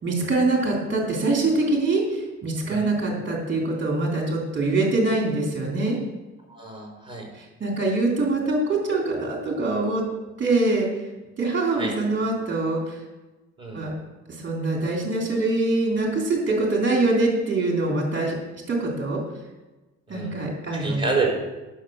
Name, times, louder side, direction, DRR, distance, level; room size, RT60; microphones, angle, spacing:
voice 1, 0.0-6.0 7.4-10.0 10.4-10.9 11.4-13.0 13.7-13.9 14.4-18.4 18.7-19.2 20.1-21.2, right 2 dB, 40° right, -1 dB, 3.5 m, -24 dB
voice 2, 6.5-7.3 11.8-11.9 13.6-13.8 20.1-20.4 20.7-21.3, right 4 dB, 15° right, 0 dB, 4.1 m, -28 dB
10.5 x 6.4 x 6.5 m, 1.1 s
cardioid pair, 90°, 30 cm